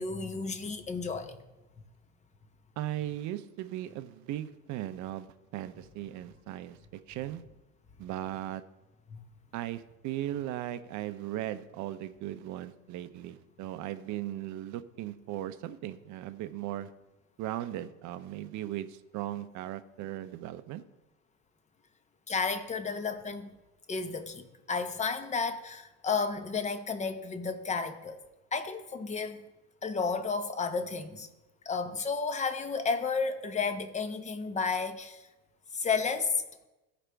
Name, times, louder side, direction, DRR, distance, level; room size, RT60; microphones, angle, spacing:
voice 1, 0.0-1.4 9.1-9.2 22.3-23.5 23.9-28.2 28.5-29.4 29.8-31.3 31.7-35.3 35.7-36.4, left 4 dB, 15° left, 9 dB, 0.7 m, -32 dB
voice 2, 2.8-5.3 5.5-6.8 7.1-7.4 8.0-8.6 9.5-16.9 17.4-20.8, right 13 dB, 40° right, 12 dB, 0.6 m, -37 dB
15.0 x 5.1 x 3.4 m, 1.0 s
supercardioid pair, 110°, 45 cm